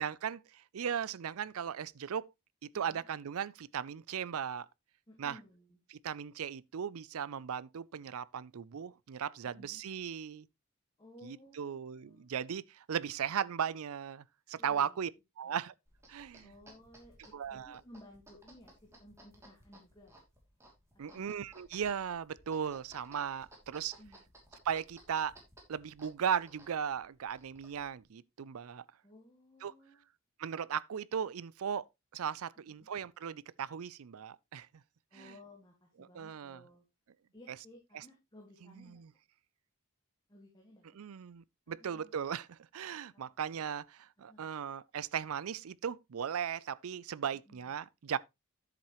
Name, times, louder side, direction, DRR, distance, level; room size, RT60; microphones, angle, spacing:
voice 1, 0.0-2.2 2.7-4.7 5.2-5.4 5.9-10.5 11.2-15.1 15.4-15.7 16.1-16.5 17.3-17.8 21.0-23.9 24.6-25.4 25.7-28.8 29.6-29.7 30.4-31.8 32.1-34.7 36.0-36.6 37.9-38.0 38.8-39.1 40.9-48.2, right 8 dB, 75° right, 0.4 m, -37 dB
voice 2, 5.1-5.8 9.4-9.8 11.0-12.2 14.6-15.1 15.4-15.6 16.4-20.2 21.1-21.3 24.0-24.3 29.0-30.0 32.8-32.9 35.1-36.8 37.3-39.0 40.3-40.8 41.7-42.2 43.1-43.3 44.2-44.6 47.5-47.7, left 1 dB, 20° left, 1.9 m, -57 dB
sound 1, 15.9-28.0, right 1 dB, 10° right, 2.8 m, -60 dB
10.5 x 7.6 x 3.1 m
head